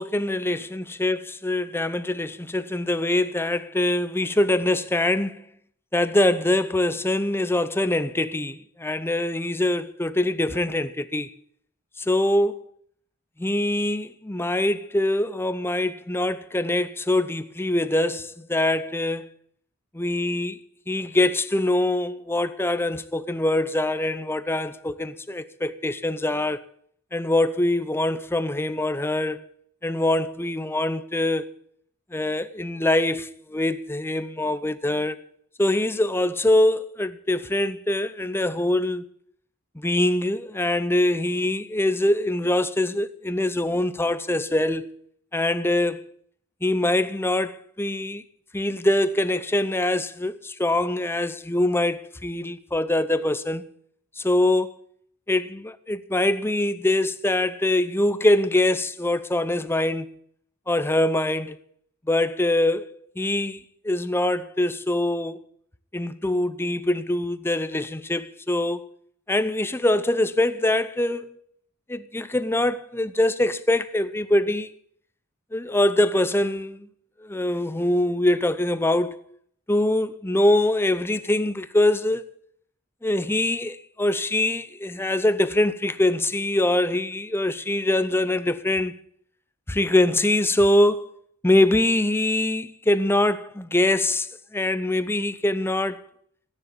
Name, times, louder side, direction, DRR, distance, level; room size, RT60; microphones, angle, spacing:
voice 1, 0.0-5.4 5.9-11.3 12.0-12.7 13.4-19.3 19.9-20.6 20.9-26.6 27.1-29.5 29.8-31.5 32.1-35.2 35.6-39.0 39.8-44.9 45.3-46.0 46.6-48.2 48.5-53.6 54.2-54.8 55.3-60.1 60.7-61.6 62.1-65.4 65.9-68.8 69.3-71.3 71.9-74.7 75.5-76.9 77.2-79.2 79.7-82.2 83.0-88.9 89.7-91.1 91.4-96.0, left 1 dB, 10° left, 0.7 m, -23 dB
14.5 x 9.9 x 8.5 m
head